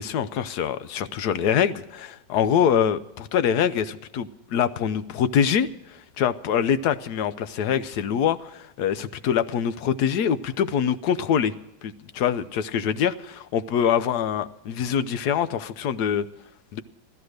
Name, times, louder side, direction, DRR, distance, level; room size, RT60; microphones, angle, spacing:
voice 1, 0.0-5.7 6.2-11.5 11.8-16.3 16.7-16.8, left 8 dB, 65° left, 13 dB, 1.1 m, -24 dB
15.0 x 13.5 x 6.4 m, 0.93 s
omnidirectional pair, 2.2 m